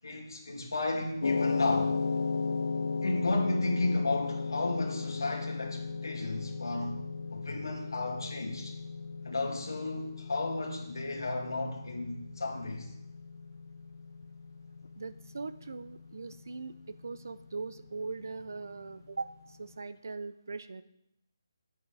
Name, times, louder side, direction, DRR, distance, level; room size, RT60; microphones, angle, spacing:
voice 1, 0.0-1.9 3.0-7.0 7.3-8.8 9.2-12.9, left 2 dB, 85° left, 2.5 m, -33 dB
sound 1, 1.2-19.5, left 4 dB, 55° left, 0.6 m, -36 dB
voice 2, 15.0-20.8, right 4 dB, 50° right, 0.5 m, -40 dB
10.5 x 8.3 x 3.4 m
hypercardioid pair, 180°, 2 cm